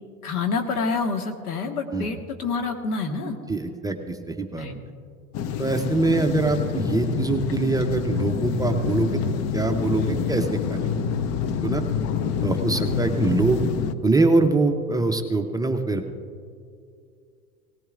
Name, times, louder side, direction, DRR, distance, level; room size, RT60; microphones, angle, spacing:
voice 1, 0.2-3.4 4.6-4.8, left 4 dB, 80° left, 4 dB, 1.6 m, -27 dB
voice 2, 3.2-4.7 5.6-9.2 9.5-11.1 11.6-11.8 12.4-13.6 14.0-16.0, right 3 dB, 10° right, 5 dB, 0.6 m, -24 dB
sound 1, 5.3-13.9, left 7 dB, 35° left, 0.6 m, -27 dB
18.5 x 18.0 x 2.5 m, 2.3 s
hypercardioid pair, 85°, 45 cm